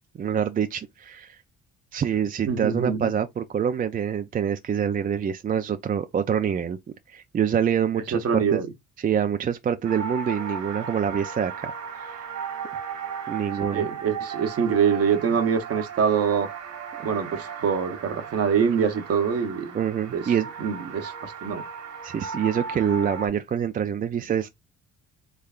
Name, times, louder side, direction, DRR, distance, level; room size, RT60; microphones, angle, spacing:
voice 1, 0.2-1.4 1.9-6.8 7.1-8.6 9.0-12.3 13.3-13.9 19.7-20.5 20.8-20.9 22.0-24.5, right 8 dB, 30° right, 0.3 m, -26 dB
voice 2, 2.5-3.1 8.1-8.7 13.7-16.5 17.0-19.8 20.1-20.2 20.6-21.6, right 7 dB, 50° right, 0.8 m, -24 dB
sound 1, 9.8-23.3, right 6 dB, 70° right, 1.3 m, -36 dB
3.5 x 3.2 x 2.3 m
cardioid pair, 90°, 30 cm